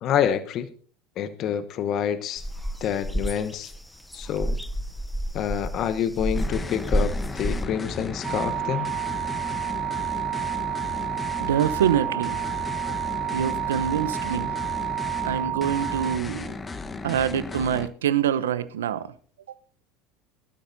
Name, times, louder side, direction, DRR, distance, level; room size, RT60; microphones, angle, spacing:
voice 1, 0.0-0.7 1.2-2.5 2.8-3.7 4.1-4.6 5.3-8.9, left 9 dB, 50° left, 1.0 m, -27 dB
sound 1, 2.4-7.6, equal, 5° left, 0.7 m, -29 dB
sound 2, 6.3-17.9, left 3 dB, 20° left, 1.2 m, -35 dB
sound 3, 8.2-16.2, right 15 dB, 40° right, 0.7 m, -30 dB
voice 2, 11.4-12.4 13.3-14.5 15.2-16.5 17.0-19.1, right 9 dB, 80° right, 0.8 m, -25 dB
23.0 x 12.5 x 2.7 m
hypercardioid pair, 80°, 0 cm